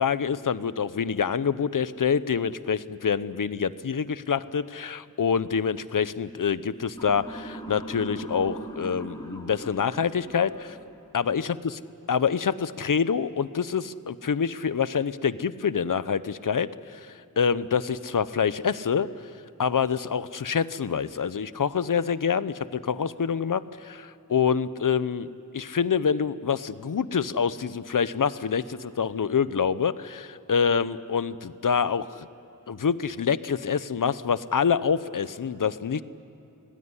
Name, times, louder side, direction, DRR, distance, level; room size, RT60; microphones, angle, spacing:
voice 1, 0.0-10.8 11.1-11.6 12.1-17.0 17.4-19.1 19.6-32.3 32.7-36.0, left 6 dB, 70° left, 15 dB, 0.8 m, -26 dB
Motor vehicle (road) / Siren, 7.0-11.1, right 1 dB, 10° left, 3.7 m, -40 dB
26.0 x 19.0 x 9.7 m, 2.9 s
wide cardioid pair, 65°, 33 cm